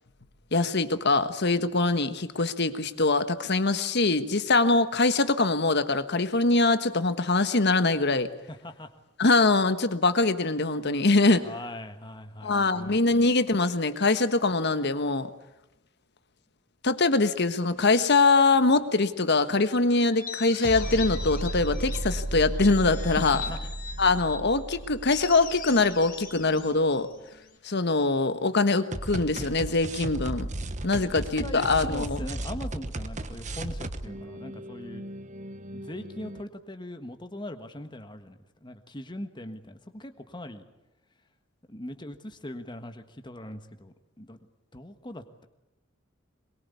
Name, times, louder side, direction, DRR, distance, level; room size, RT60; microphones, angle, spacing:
voice 1, 0.5-8.3 9.2-11.5 12.4-15.3 16.8-23.4 24.0-27.1 27.6-30.5 30.8-32.2, left 3 dB, 55° left, 11 dB, 1.4 m, -23 dB
voice 2, 8.5-8.9 11.4-13.2 23.2-23.6 30.9-35.0 35.7-40.7 41.7-44.4 44.7-45.4, left 1 dB, 25° left, 7 dB, 1.5 m, -41 dB
sound 1, 18.6-18.9 20.6-26.5 28.9-36.4, right 1 dB, 35° right, 1.1 m, -35 dB
sound 2, 20.1-22.2 22.6-24.5 25.1-27.6, left 6 dB, 40° left, 3.9 m, -41 dB
22.5 x 22.0 x 8.4 m, 0.92 s
head